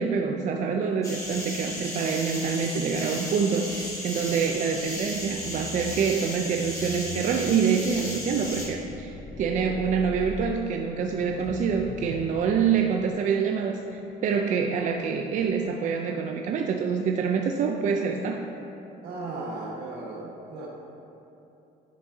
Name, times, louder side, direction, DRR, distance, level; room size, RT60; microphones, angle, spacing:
voice 1, 0.0-18.4, right 6 dB, 50° right, 3 dB, 0.4 m, -26 dB
sound 1, 1.0-8.7, left 1 dB, 20° left, 1.3 m, -35 dB
sound 2, 4.9-15.0 15.4-15.7, left 4 dB, 35° left, 0.4 m, -43 dB
voice 2, 19.0-20.7, right 2 dB, 80° right, -3 dB, 1.3 m, -36 dB
10.5 x 3.6 x 2.7 m, 2.9 s
cardioid pair, 110°, 17 cm